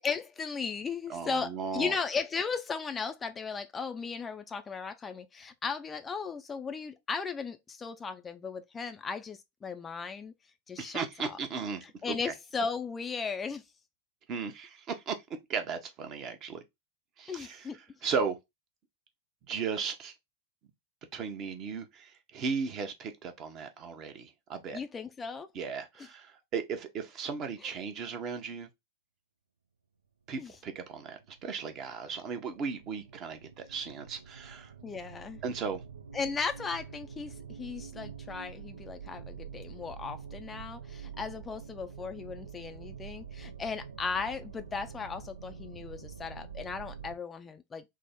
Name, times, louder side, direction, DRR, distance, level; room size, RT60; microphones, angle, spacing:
voice 1, 0.0-10.3 10.7-11.4 11.8-13.6 17.3-17.8 24.7-25.5 26.0-26.1 27.6-27.8 30.4-30.5 34.8-35.4 36.1-47.8, left 5 dB, 15° left, 0.3 m, -36 dB
voice 2, 1.1-1.9 10.8-12.3 14.3-15.1 15.5-16.6 17.2-17.7 18.0-18.4 19.5-20.1 21.1-24.8 25.5-28.7 30.3-34.7 35.4-35.8, right 5 dB, 35° right, 0.7 m, -36 dB
sound 1, 30.5-47.2, right 6 dB, 75° right, 0.6 m, -47 dB
3.5 x 2.0 x 3.4 m
figure-of-eight pair, 90°, 0 cm